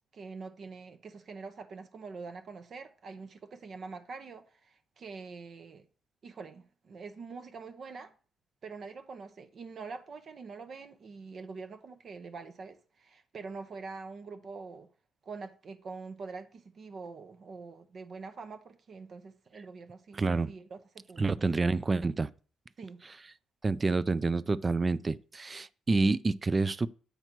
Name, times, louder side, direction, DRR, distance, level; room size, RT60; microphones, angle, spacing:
voice 1, 0.0-5.9 6.2-8.1 8.6-14.9 15.2-21.3 22.8-23.0, right 4 dB, 50° right, 0.7 m, -45 dB
voice 2, 20.2-20.5 21.2-22.3 23.6-26.9, right 3 dB, 30° right, 0.3 m, -28 dB
8.0 x 3.0 x 5.9 m
cardioid pair, 90°, 0 cm